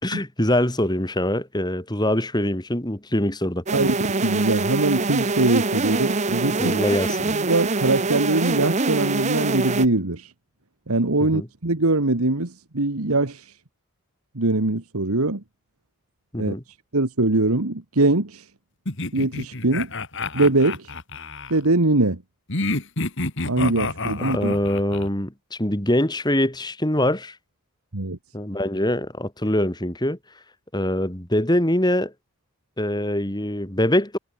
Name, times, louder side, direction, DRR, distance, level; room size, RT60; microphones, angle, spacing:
voice 1, 0.0-3.6 6.6-7.3 11.2-11.5 16.3-16.6 24.3-27.3 28.3-30.2 30.7-32.1 32.8-34.2, left 1 dB, 20° left, 3.0 m, -23 dB
sound 1, 3.7-9.9, right 3 dB, 30° right, 0.9 m, -24 dB
voice 2, 3.7-6.8 7.2-10.3 10.9-13.5 14.4-15.4 16.4-16.5 16.9-18.5 19.1-19.9 20.3-20.9 21.5-22.2 23.5-24.5 27.9-28.2, right 2 dB, 75° right, 1.8 m, -22 dB
sound 2, 18.9-21.6 22.5-25.1, left 3 dB, 55° left, 2.9 m, -29 dB
head